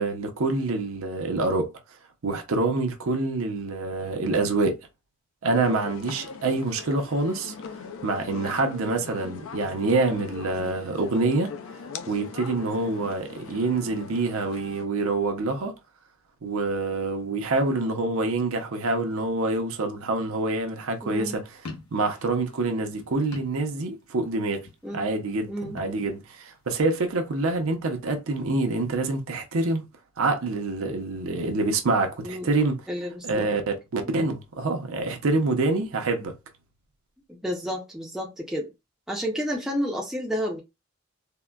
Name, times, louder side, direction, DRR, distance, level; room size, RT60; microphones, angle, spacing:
voice 1, 0.0-1.7 2.2-4.8 5.4-7.5 8.0-11.5 12.1-15.7 16.4-21.4 21.9-24.7 24.9-29.8 30.2-32.8 33.2-36.3, right 3 dB, 70° right, 0.6 m, -26 dB
sound 1, 5.5-14.9, left 5 dB, 60° left, 0.3 m, -40 dB
voice 2, 21.0-21.4 24.8-25.1 25.5-25.8 32.2-32.5 32.9-33.5 34.1-34.2 37.3-38.7 39.1-40.6, equal, ahead, 0.4 m, -31 dB
sound 2, 21.5-24.2 24.5-25.1 25.6-26.9, left 3 dB, 80° left, 0.8 m, -44 dB
3.6 x 2.1 x 2.2 m
head